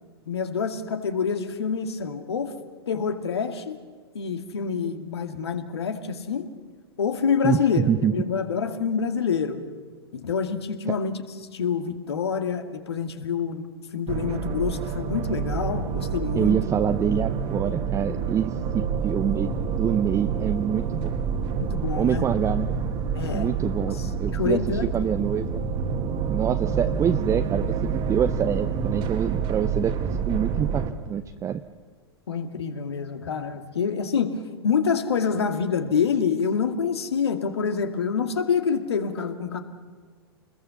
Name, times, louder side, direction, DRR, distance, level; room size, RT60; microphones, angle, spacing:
voice 1, 0.3-2.6 2.9-3.8 4.1-6.5 7.0-9.6 10.1-11.2 11.5-13.6 13.9-16.5 21.6-22.3 23.2-23.5 23.9-24.8 32.3-39.6, left 6 dB, 70° left, 7 dB, 2.3 m, -27 dB
voice 2, 7.4-8.1 10.9-11.0 16.4-21.2 22.0-22.7 23.3-25.6 26.3-31.6, right 8 dB, 20° right, 9 dB, 0.8 m, -26 dB
Dark Dramatic Scandinavian Atmo Background, 14.1-30.9, right 6 dB, 35° right, 1.9 m, -28 dB
27.5 x 21.0 x 7.1 m, 1.5 s
figure-of-eight pair, 100°, 14 cm